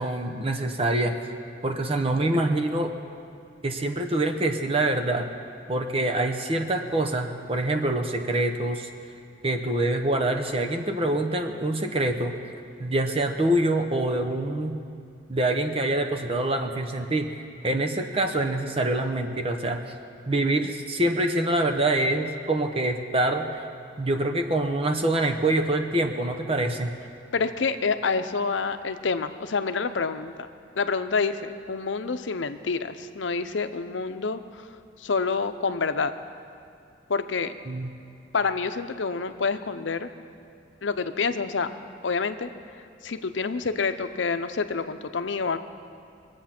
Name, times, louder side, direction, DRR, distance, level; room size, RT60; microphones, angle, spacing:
voice 1, 0.0-1.3 1.6-2.9 3.6-5.3 5.7-8.9 9.4-12.3 12.8-14.8 15.3-17.3 17.6-19.8 20.3-23.7 24.0-26.9 37.7-37.9, right 1 dB, 30° right, 5 dB, 0.9 m, -25 dB
voice 2, 27.3-30.5 30.8-34.7 35.0-36.1 37.1-37.5 38.3-40.1 40.8-41.7 42.0-42.5 43.0-45.6, left 4 dB, 85° left, 10 dB, 0.7 m, -27 dB
22.0 x 8.1 x 5.9 m, 2.4 s
head